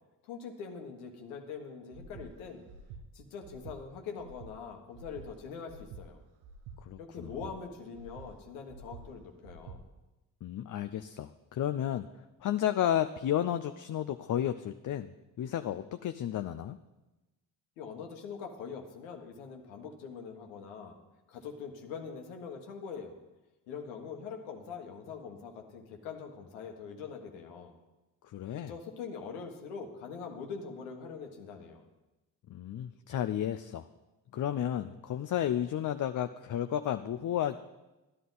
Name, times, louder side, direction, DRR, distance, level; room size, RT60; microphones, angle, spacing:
voice 1, 0.2-2.7 3.1-6.2 7.0-9.8 17.8-20.9 21.3-23.2 23.7-27.7 28.5-31.8, left 5 dB, 80° left, 3 dB, 1.4 m, -43 dB
Breathing, 1.9-2.3 2.7-3.0 3.4-3.8 4.2-4.5 4.9-5.3 5.7-6.0 6.4-6.8 7.2-7.5 7.9-8.3 8.7-9.0 9.4-9.8, right 5 dB, 80° right, 0.9 m, -48 dB
voice 2, 6.9-7.3 10.4-12.0 12.4-15.1 15.4-16.8 28.3-28.7 32.5-33.9 34.3-37.6, left 11 dB, 40° left, 9 dB, 0.5 m, -32 dB
12.5 x 11.0 x 4.0 m, 1.0 s
hypercardioid pair, 45°, 49 cm